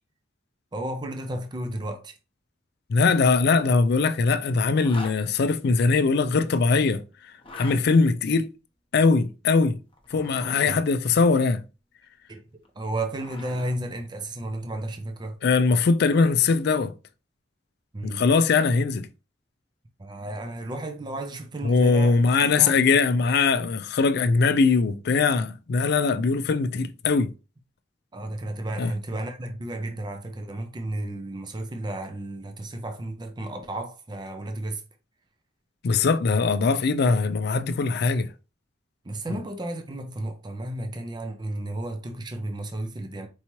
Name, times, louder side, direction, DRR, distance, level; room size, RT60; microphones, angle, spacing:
voice 1, 0.7-2.1 10.7-10.8 12.3-12.4 12.8-15.4 17.9-18.2 20.0-23.0 28.1-34.8 39.0-43.3, right 1 dB, 25° right, 0.5 m, -33 dB
voice 2, 2.9-7.0 7.5-8.5 8.9-9.8 10.1-11.6 15.4-16.9 18.0-19.1 21.6-27.3 28.8-28.9 35.8-38.3 39.3-39.4, left 4 dB, 60° left, 0.4 m, -21 dB
Zipper (clothing), 4.8-5.2 7.3-7.8 9.9-10.8 12.7-13.8, left 2 dB, 30° left, 0.8 m, -41 dB
4.6 x 2.8 x 2.9 m
head